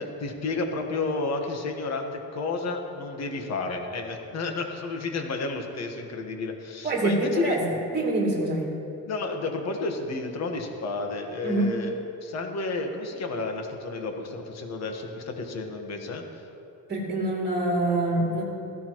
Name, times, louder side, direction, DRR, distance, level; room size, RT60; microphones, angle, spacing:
voice 1, 0.0-7.6 9.1-16.2, left 3 dB, 50° left, 3 dB, 1.5 m, -31 dB
voice 2, 6.8-7.6 7.9-8.7 11.4-11.7 16.9-18.4, right 2 dB, 30° right, -3 dB, 3.0 m, -25 dB
16.5 x 16.0 x 3.1 m, 2.7 s
cardioid pair, 170°, 34 cm